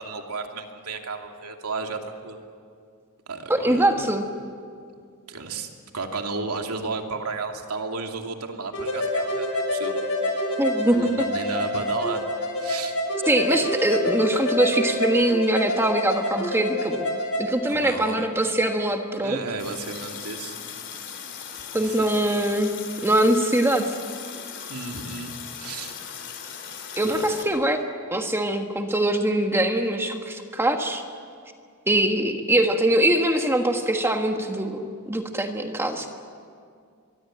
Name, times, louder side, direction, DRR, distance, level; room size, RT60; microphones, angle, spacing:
voice 1, 0.0-2.4 3.3-4.1 5.3-5.7 5.9-9.9 10.2-10.4 10.9-12.2 12.6-13.0 17.6-18.3 19.2-20.6 21.8-22.1 24.7-25.9 27.0-27.3, right 4 dB, 80° right, 3 dB, 2.6 m, -33 dB
voice 2, 3.5-4.2 10.6-11.3 13.3-17.0 17.4-19.4 21.7-22.7 23.0-24.0 27.0-27.8 28.1-31.0 31.9-36.1, right 1 dB, 10° right, 4 dB, 1.4 m, -23 dB
sound 1, 8.7-17.4, left 1 dB, 70° left, 6.5 m, -27 dB
Water tap faucet, 19.6-27.4, left 7 dB, 55° left, 3.3 m, -38 dB
23.5 x 23.0 x 9.0 m, 2.2 s
head